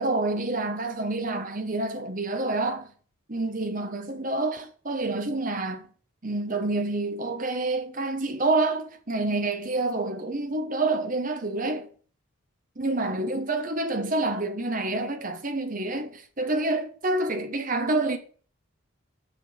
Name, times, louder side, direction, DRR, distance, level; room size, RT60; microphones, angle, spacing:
voice 1, 0.0-2.9 3.3-5.9 6.2-11.9 12.8-18.2, right 2 dB, 40° right, 1.1 m, -28 dB
6.8 x 6.1 x 7.3 m
head